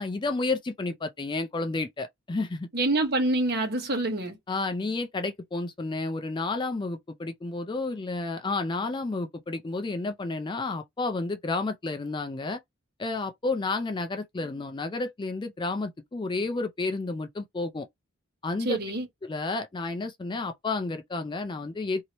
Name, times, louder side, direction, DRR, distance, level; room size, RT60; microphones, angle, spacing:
voice 1, 0.0-2.7 4.5-12.6 13.0-17.9 18.4-18.8 19.2-22.0, left 3 dB, 20° left, 0.3 m, -31 dB
voice 2, 2.7-4.4 18.6-19.1, right 2 dB, 50° right, 1.1 m, -26 dB
2.9 x 2.7 x 2.9 m
head